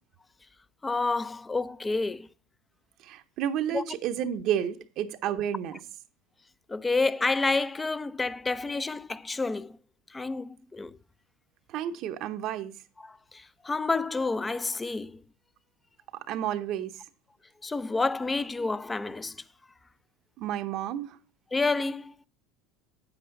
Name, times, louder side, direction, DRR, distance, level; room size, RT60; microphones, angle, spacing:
voice 1, 0.8-2.3 3.7-3.8 6.7-9.8 10.1-11.0 13.0-15.2 17.6-19.4 21.5-22.1, left 3 dB, 15° left, 0.5 m, -29 dB
voice 2, 3.0-5.8 11.7-12.7 16.1-17.0 20.4-21.2, right 10 dB, 60° right, 0.8 m, -31 dB
8.2 x 8.0 x 3.9 m
supercardioid pair, 95°, 0 cm